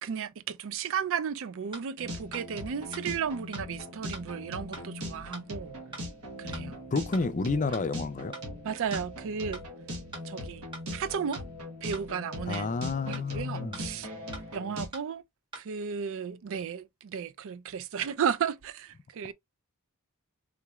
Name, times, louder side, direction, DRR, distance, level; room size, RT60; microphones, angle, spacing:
voice 1, 0.0-5.7 6.4-6.8 8.6-9.6 10.2-10.6 10.9-11.4 11.8-12.7 13.1-14.1 14.5-15.2 15.6-19.3, right 7 dB, 60° right, 0.4 m, -34 dB
sound 1, 1.7-1.8 2.3-2.4 2.9-3.0 3.5-3.6 4.1-4.2 4.7-4.8 5.3-5.4 5.9-6.0 6.5-6.6 7.1-7.2 7.7-7.8 8.3-8.4 8.9-9.0 9.5-9.6 10.1-10.2 10.7-10.8 11.3-11.4 11.9-12.0 12.5-12.6 13.1-13.2 13.7-13.8 14.3-14.4 14.9-15.0 15.5-15.6, right 2 dB, 25° right, 1.4 m, -42 dB
sound 2, 2.0-14.9, equal, 80° right, 1.1 m, -40 dB
voice 2, 6.4-8.3 12.5-14.0, left 4 dB, 35° left, 0.4 m, -31 dB
3.8 x 3.0 x 2.3 m
head